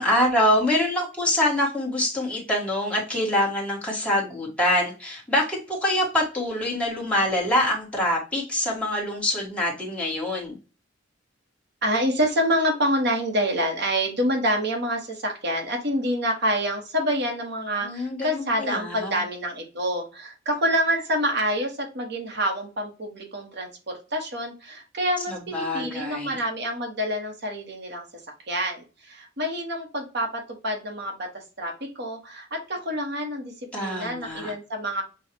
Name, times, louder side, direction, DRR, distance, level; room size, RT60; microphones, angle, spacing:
voice 1, 0.0-10.6 17.8-19.2 25.3-26.4 33.7-34.5, left 1 dB, 5° left, -4 dB, 1.4 m, -25 dB
voice 2, 11.8-28.0 28.5-35.0, equal, 60° right, 2 dB, 1.3 m, -27 dB
6.2 x 2.5 x 2.9 m, 0.33 s
head